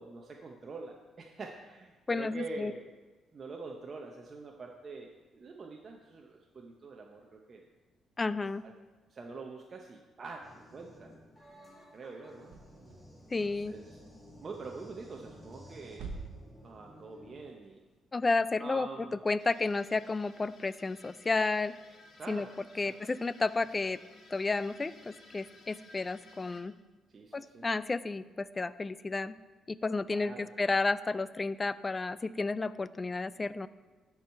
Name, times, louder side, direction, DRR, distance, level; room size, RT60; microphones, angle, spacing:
voice 1, 0.0-2.9 3.3-7.6 8.3-8.7 9.1-11.1 11.9-12.5 13.4-14.0 14.4-16.1 16.6-17.8 18.6-19.2 22.2-22.5 22.7-22.9 23.8-23.9 27.1-27.6 30.1-30.5, right 3 dB, 40° right, 1 dB, 0.8 m, -45 dB
voice 2, 2.1-2.7 8.2-8.6 13.3-13.7 18.1-18.9 19.2-21.7 22.3-22.5 22.8-24.0 24.3-26.7 27.3-29.4 29.7-33.7, left 3 dB, 25° left, 16 dB, 0.3 m, -32 dB
sound 1, 10.4-17.4, equal, 10° left, 2.3 m, -54 dB
sound 2, 12.4-20.3, right 4 dB, 85° right, 0.9 m, -50 dB
sound 3, 19.4-26.6, left 2 dB, 55° left, 1.2 m, -57 dB
12.5 x 4.7 x 4.5 m, 1.3 s
cardioid pair, 90°, 0 cm